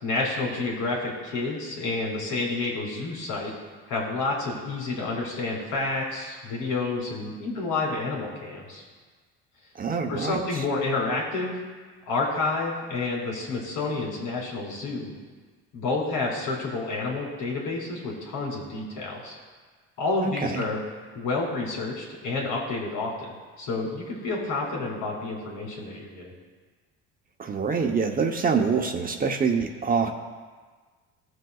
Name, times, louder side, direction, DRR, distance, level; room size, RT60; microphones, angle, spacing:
voice 1, 0.0-3.5 3.9-8.8 10.1-11.5 12.1-15.1 15.7-19.3 20.0-20.8 21.1-26.3, left 3 dB, 80° left, -3 dB, 3.1 m, -29 dB
voice 2, 9.8-10.4 20.2-20.6 27.4-30.1, right 5 dB, 30° right, 3 dB, 0.9 m, -25 dB
19.0 x 6.5 x 2.4 m, 1.5 s
cardioid pair, 105°, 31 cm